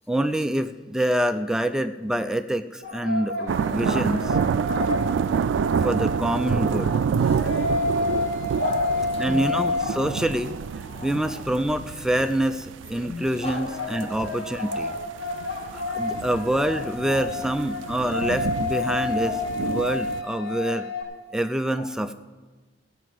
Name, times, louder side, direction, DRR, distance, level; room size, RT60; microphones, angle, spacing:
voice 1, 0.1-4.3 5.8-7.0 9.2-10.6 11.0-14.9 15.7-20.9 21.3-22.1, right 1 dB, 5° right, 0.3 m, -26 dB
sound 1, 2.8-10.7 13.2-21.0, left 3 dB, 85° left, 2.9 m, -30 dB
sound 2, 3.5-20.2, right 7 dB, 85° right, 0.3 m, -28 dB
voice 2, 8.5-9.5 10.9-11.4 13.0-13.7 14.0-14.2 14.7-15.0 17.1-17.2 19.2-19.4 21.8-21.9, left 2 dB, 35° left, 1.2 m, -35 dB
16.0 x 6.0 x 7.7 m
head